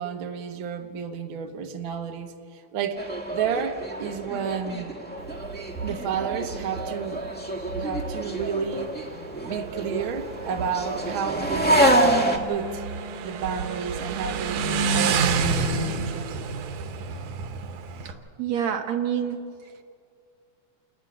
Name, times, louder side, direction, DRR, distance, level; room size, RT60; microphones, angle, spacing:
voice 1, 0.0-4.9 5.8-7.2 7.8-8.9 9.5-11.9 12.5-12.8 13.2-16.4, right 6 dB, 55° right, 4 dB, 1.7 m, -31 dB
sound 1, 3.0-12.4, right 1 dB, 5° left, 0.7 m, -27 dB
Motorcycle, 5.2-18.1, right 5 dB, 85° right, 2.6 m, -30 dB
voice 2, 18.0-19.4, right 9 dB, 70° right, 5 dB, 2.3 m, -27 dB
28.5 x 11.0 x 9.8 m, 2.3 s
omnidirectional pair, 3.4 m